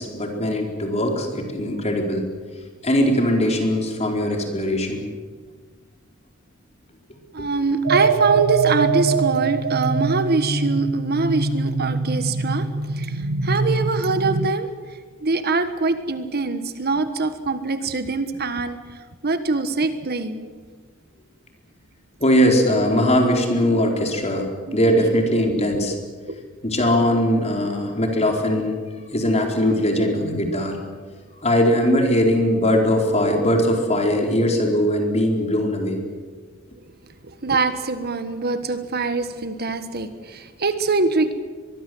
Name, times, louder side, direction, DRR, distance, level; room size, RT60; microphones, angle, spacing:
voice 1, 0.0-2.2 2.8-5.1 7.4-7.5 22.2-26.0 26.6-28.8 29.1-30.8 31.4-36.0, equal, 30° left, 2 dB, 4.4 m, -20 dB
voice 2, 7.3-12.7 12.9-19.0 19.2-20.4 24.7-24.8 25.0-25.1 26.3-26.4 37.2-41.3, right 3 dB, 50° right, 10 dB, 1.5 m, -24 dB
sound 1, 7.8-14.5, right 4 dB, 65° right, 1.1 m, -23 dB
23.5 x 22.5 x 7.9 m, 1.5 s
head